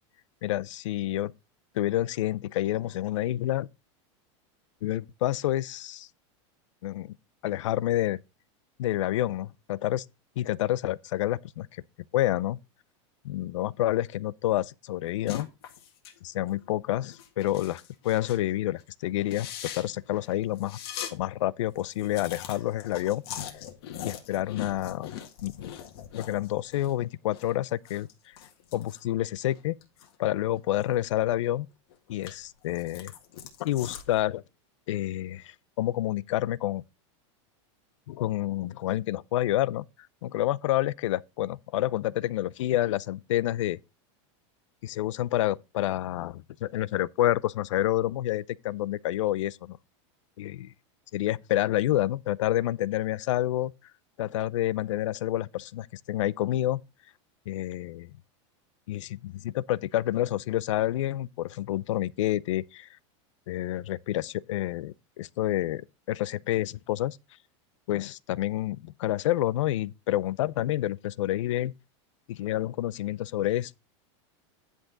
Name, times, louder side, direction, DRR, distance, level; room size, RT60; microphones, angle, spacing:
voice 1, 0.4-1.3 1.7-3.7 4.8-6.1 6.8-7.1 7.4-8.2 8.8-10.0 10.4-11.8 12.1-12.6 13.2-15.5 16.2-20.8 21.1-23.2 24.0-25.1 25.4-25.7 26.1-28.1 28.7-29.8 30.2-31.7 32.1-33.1 33.6-34.4 34.9-36.8 38.1-39.8 40.2-43.8 44.8-49.8 50.4-50.7 51.1-53.7 54.2-56.8 57.5-58.1 58.9-62.9 63.5-67.2 67.9-71.7 72.3-73.8, left 14 dB, 85° left, 0.5 m, -28 dB
sound 1, 15.2-16.2 16.5-16.7 17.1-18.5 18.8-18.9 19.2-21.1 21.5-21.6 21.7-26.9 27.2-30.1 30.5-31.5 31.9-34.2, left 10 dB, 55° left, 1.7 m, -42 dB
10.5 x 6.1 x 3.9 m
supercardioid pair, 180°, 16 cm